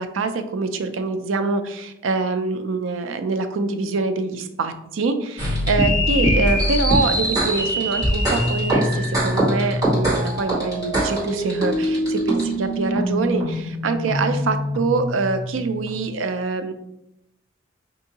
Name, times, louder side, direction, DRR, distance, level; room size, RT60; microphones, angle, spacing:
voice 1, 0.0-16.7, right 3 dB, 85° right, 8 dB, 0.4 m, -25 dB
sound 1, 5.4-16.1, equal, 20° right, 1.4 m, -23 dB
5.2 x 2.7 x 2.8 m, 0.84 s
head